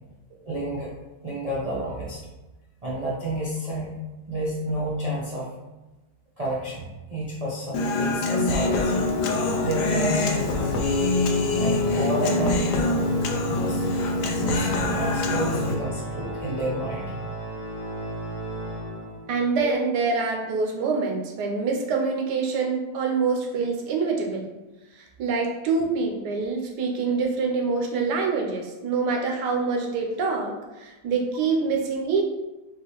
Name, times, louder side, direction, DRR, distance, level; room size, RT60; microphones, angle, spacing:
voice 1, 0.4-0.9 1.2-2.2 2.8-4.0 4.3-5.5 6.4-9.1 9.6-10.8 11.6-13.0 13.5-13.9 14.4-17.1, right 1 dB, 55° right, -6 dB, 0.4 m, -30 dB
Human voice, 7.7-15.8, left 3 dB, 85° left, 1.2 m, -24 dB
Organ, 8.7-19.5, right 1 dB, 40° left, 0.8 m, -34 dB
voice 2, 19.3-24.5 24.9-32.2, right 4 dB, 85° right, 1 dB, 1.3 m, -25 dB
5.8 x 2.5 x 3.0 m, 1.1 s
omnidirectional pair, 1.8 m